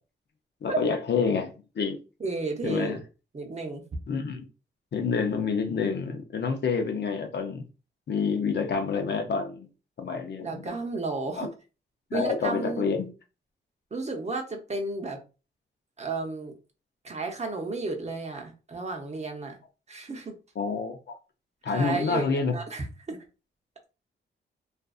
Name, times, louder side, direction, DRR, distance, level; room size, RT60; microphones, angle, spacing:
voice 1, 0.6-2.0 2.6-3.0 4.1-4.5 4.9-7.7 8.1-9.7 10.0-10.6 11.3-11.5 12.1-13.1 20.6-21.1 21.6-22.5, left 5 dB, 60° left, 0.6 m, -28 dB
voice 2, 2.2-3.0 3.3-3.8 10.4-11.5 12.1-12.9 13.9-15.2 16.0-16.5 17.0-19.6 19.9-20.4 21.7-23.2, right 3 dB, 35° right, 0.7 m, -32 dB
2.5 x 2.5 x 2.3 m
cardioid pair, 75°, 20 cm